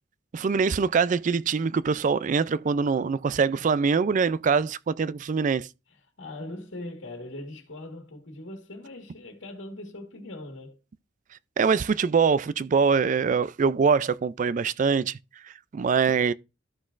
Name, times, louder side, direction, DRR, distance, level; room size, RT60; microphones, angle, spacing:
voice 1, 0.3-5.7 11.6-15.2 15.7-16.3, right 5 dB, 40° right, 0.3 m, -23 dB
voice 2, 5.9-10.8, left 1 dB, 80° left, 1.6 m, -40 dB
13.5 x 6.0 x 2.5 m
head